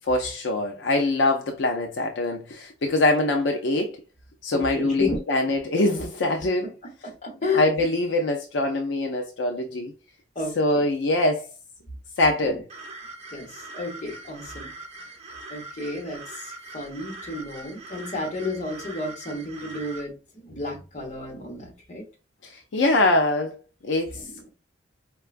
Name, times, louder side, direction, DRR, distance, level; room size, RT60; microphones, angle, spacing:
voice 1, 0.0-4.0 4.4-6.7 7.5-9.9 10.6-11.4 12.2-12.6 22.5-23.6 23.8-24.2, left 2 dB, 80° left, 0.4 m, -23 dB
voice 2, 4.5-5.2 7.0-7.7 10.3-10.8 12.4-12.6 13.3-15.0 15.5-22.0 24.1-24.5, left 3 dB, 40° left, 1.1 m, -32 dB
sound 1, 12.7-20.0, right 2 dB, 35° right, 0.7 m, -42 dB
4.5 x 2.3 x 2.4 m
head